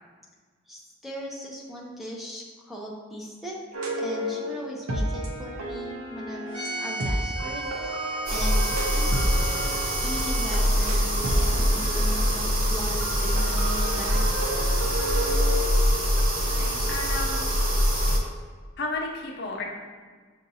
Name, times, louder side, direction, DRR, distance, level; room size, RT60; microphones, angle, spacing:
voice 1, 0.7-3.6 4.0-9.2 10.0-14.2, equal, ahead, -4 dB, 0.5 m, -38 dB
sound 1, 3.7-12.5 13.0-16.2, equal, 85° right, 0.6 m, -32 dB
sound 2, 6.5-10.6, right 2 dB, 25° right, 1.3 m, -36 dB
sound 3, 8.3-18.2, equal, 40° right, 0.6 m, -24 dB
voice 2, 16.5-17.4 18.8-19.6, left 2 dB, 55° left, 0 dB, 0.6 m, -33 dB
6.5 x 2.6 x 2.7 m, 1.5 s
head